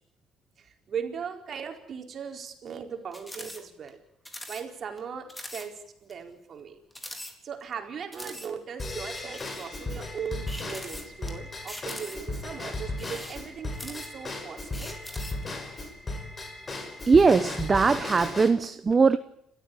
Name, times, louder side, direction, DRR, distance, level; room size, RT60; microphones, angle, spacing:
voice 1, 0.6-4.0 4.5-6.8 7.4-15.0, right 7 dB, 50° right, 5 dB, 4.5 m, -38 dB
sound 1, 3.1-3.6 3.9-4.0 4.2-4.6 5.0-5.1 5.3-5.7 6.1-6.2 6.9-7.7 8.1-8.5 9.1-9.7 10.5-11.3 11.7-12.4 12.9-14.3 14.7-15.4, left 1 dB, 10° left, 4.1 m, -42 dB
Drum kit / Drum / Bell, 8.8-18.5, left 2 dB, 30° left, 5.3 m, -36 dB
voice 2, 17.1-19.2, right 4 dB, 30° right, 11 dB, 1.0 m, -20 dB
30.0 x 14.0 x 8.7 m, 0.75 s
cardioid pair, 95°, 0 cm